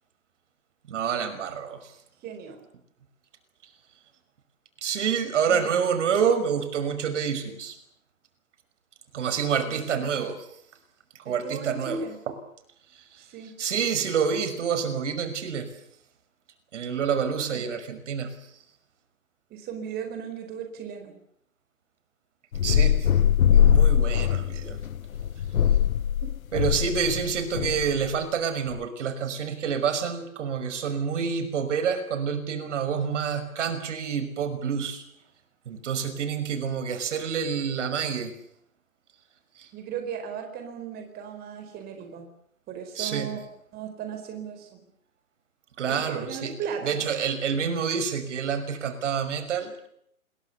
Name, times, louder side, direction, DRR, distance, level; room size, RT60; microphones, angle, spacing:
voice 1, 0.9-1.9 4.8-7.8 9.1-10.4 11.2-12.3 12.9-13.2 13.6-15.7 16.7-18.4 22.6-23.1 23.5-24.8 26.5-35.0 35.7-38.4 39.6-39.7 42.9-43.3 45.8-46.5 46.8-49.9, right 7 dB, 55° right, 11 dB, 5.8 m, -28 dB
voice 2, 2.2-2.6 5.5-5.9 9.6-10.1 11.2-12.2 13.2-13.6 17.5-17.8 19.5-21.1 26.2-26.3 39.7-42.2 42.7-43.4 43.7-44.8 45.9-47.0, right 7 dB, 20° right, 6 dB, 4.5 m, -36 dB
sound 1, 22.5-28.1, left 9 dB, 70° left, 1.1 m, -22 dB
28.0 x 21.5 x 7.0 m, 0.71 s
hypercardioid pair, 135°, 42 cm